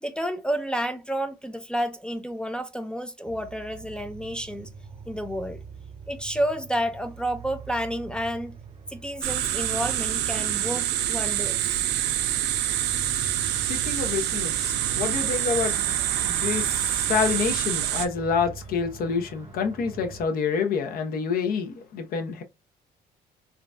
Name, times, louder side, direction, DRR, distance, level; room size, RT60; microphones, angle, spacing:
voice 1, 0.0-4.7 5.1-5.6 6.1-8.5 8.9-11.8, equal, 5° left, 0.4 m, -30 dB
sound 1, 3.2-20.3, right 6 dB, 30° right, 0.7 m, -43 dB
sound 2, 9.2-18.1, right 11 dB, 85° right, 0.5 m, -26 dB
voice 2, 13.7-22.4, left 5 dB, 60° left, 0.8 m, -28 dB
3.8 x 2.2 x 2.5 m
cardioid pair, 110°, 17 cm